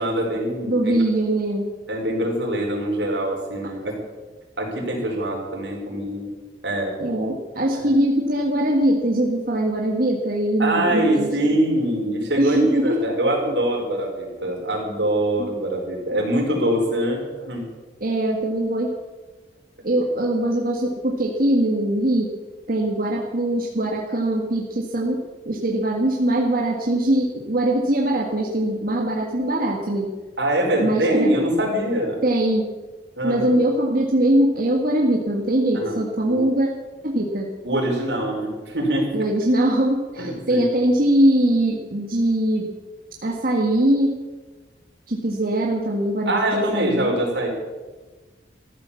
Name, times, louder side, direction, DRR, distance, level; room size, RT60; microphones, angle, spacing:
voice 1, 0.0-0.9 1.9-4.0 4.6-6.2 6.6-6.9 7.7-7.9 10.6-17.6 30.4-32.2 33.2-33.5 35.7-36.0 36.3-36.4 37.6-39.1 40.2-40.7 46.2-47.5, right 1 dB, 90° right, -1 dB, 4.9 m, -23 dB
voice 2, 0.6-1.6 7.0-11.4 12.4-13.0 13.4-13.5 15.4-15.5 18.0-18.9 19.8-22.3 22.7-30.1 30.8-31.3 32.2-32.7 33.2-36.7 37.0-37.5 39.1-42.7 43.2-44.1 45.1-47.2, right 1 dB, 55° right, -1 dB, 1.8 m, -21 dB
14.5 x 12.0 x 7.0 m, 1.3 s
head